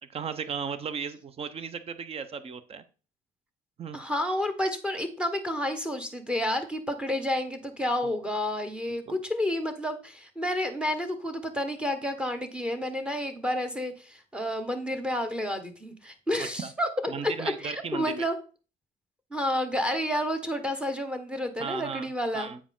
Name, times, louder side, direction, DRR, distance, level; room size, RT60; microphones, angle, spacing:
voice 1, 0.1-2.8 3.8-4.0 9.1-9.2 16.6-16.7 17.1-18.3 21.6-22.6, right 6 dB, 35° right, 13 dB, 0.7 m, -35 dB
voice 2, 3.9-16.9 17.2-18.3 19.3-22.5, left 1 dB, 5° right, 6 dB, 1.3 m, -30 dB
8.3 x 4.8 x 3.7 m, 0.35 s
cardioid pair, 110°, 17 cm